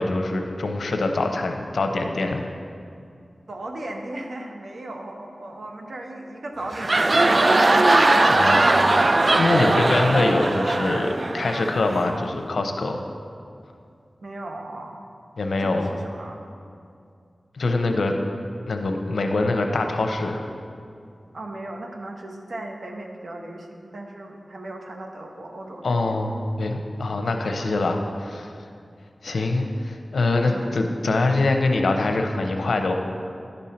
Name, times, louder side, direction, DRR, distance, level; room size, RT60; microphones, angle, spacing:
voice 1, 0.0-2.5 8.3-8.6 9.4-13.0 15.4-15.9 17.6-18.2 18.7-20.5 25.8-28.5 29.2-32.9, left 2 dB, 90° left, 4 dB, 0.7 m, -24 dB
voice 2, 3.5-7.6 8.1-8.9 14.2-15.0 15.6-16.4 21.3-26.1 28.0-28.1 29.3-29.5 30.5-30.8, right 1 dB, 75° right, 2 dB, 0.9 m, -37 dB
sound 1, 6.6-12.2, right 2 dB, 50° right, 0.4 m, -19 dB
11.0 x 5.4 x 4.3 m, 2.4 s
wide cardioid pair, 60°, 0 cm